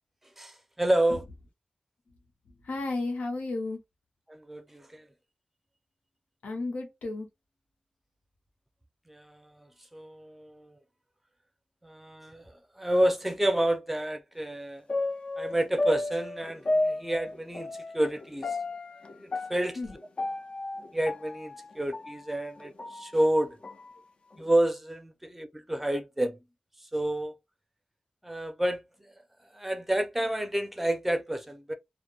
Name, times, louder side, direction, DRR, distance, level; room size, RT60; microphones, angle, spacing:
voice 1, 0.4-1.2 4.3-5.1 9.1-9.7 9.9-10.8 11.8-14.8 15.4-18.6 19.2-19.8 20.9-23.6 24.4-26.4 26.9-27.3 28.2-29.1 29.5-31.7, right 1 dB, 5° right, 0.5 m, -29 dB
voice 2, 2.6-3.8 6.4-7.3 19.8-19.9, left 2 dB, 90° left, 0.7 m, -32 dB
sound 1, 14.9-22.1 22.6-23.9 24.3-24.4, left 2 dB, 45° left, 0.4 m, -33 dB
2.1 x 2.1 x 2.9 m
wide cardioid pair, 95°, 3 cm